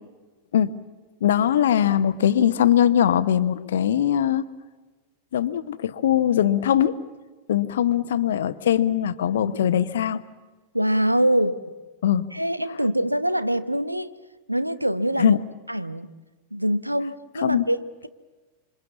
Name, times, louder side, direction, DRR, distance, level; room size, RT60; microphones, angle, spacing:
voice 1, 1.2-4.5 5.3-7.0 7.5-10.2 12.0-12.3 15.2-15.4 17.4-17.6, left 10 dB, 60° left, 13 dB, 1.0 m, -21 dB
voice 2, 10.7-11.6 12.3-14.1 14.5-15.4 15.7-16.1 16.5-18.1, equal, 90° right, 14 dB, 0.9 m, -24 dB
27.0 x 26.0 x 7.2 m, 1.3 s
figure-of-eight pair, 90°, 0 cm